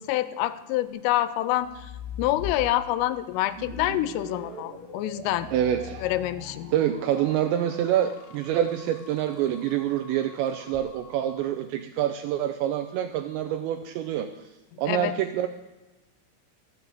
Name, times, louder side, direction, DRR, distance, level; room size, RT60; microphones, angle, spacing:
voice 1, 0.0-1.9 2.2-5.5 6.0-6.7 14.7-15.1, left 14 dB, 90° left, 13 dB, 3.2 m, -27 dB
sound 1, 1.6-3.0 3.5-9.0 10.5-10.9, left 8 dB, 75° left, 2.6 m, -42 dB
sound 2, 3.6-11.5, right 3 dB, 65° right, 2.7 m, -45 dB
voice 2, 5.5-6.0 6.7-14.3 14.8-15.5, right 11 dB, 85° right, 8 dB, 2.6 m, -26 dB
14.5 x 7.6 x 8.2 m, 1.1 s
omnidirectional pair, 5.8 m